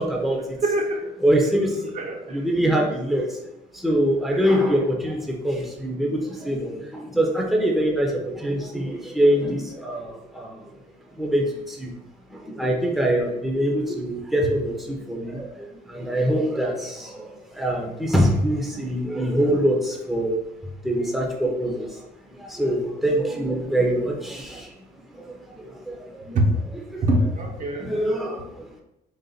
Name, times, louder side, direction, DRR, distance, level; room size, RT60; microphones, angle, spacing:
voice 1, 0.0-0.5 1.2-2.0 2.3-3.4 3.7-10.6 11.1-11.9 12.3-20.4 20.8-22.0 22.3-24.7 25.1-26.4 26.9-27.0 27.7-28.7, right 1 dB, ahead, -1 dB, 0.8 m, -24 dB
voice 2, 0.6-1.0 1.9-2.4 2.8-2.9 4.3-4.6 26.3-26.5 27.0-27.9, right 1 dB, 50° right, 1 dB, 0.9 m, -24 dB
4.0 x 2.5 x 3.9 m, 0.90 s
cardioid pair, 110°, 17 cm